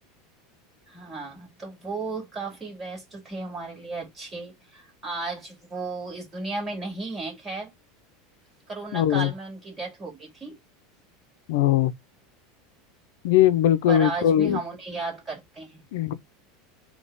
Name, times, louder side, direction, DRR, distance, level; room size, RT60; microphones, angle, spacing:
voice 1, 0.9-7.7 8.7-10.6 13.9-15.8, right 3 dB, 15° right, 2.6 m, -34 dB
voice 2, 8.9-9.3 11.5-11.9 13.2-14.6 15.9-16.1, left 11 dB, 70° left, 0.6 m, -20 dB
4.0 x 2.9 x 3.4 m
supercardioid pair, 165°, 0 cm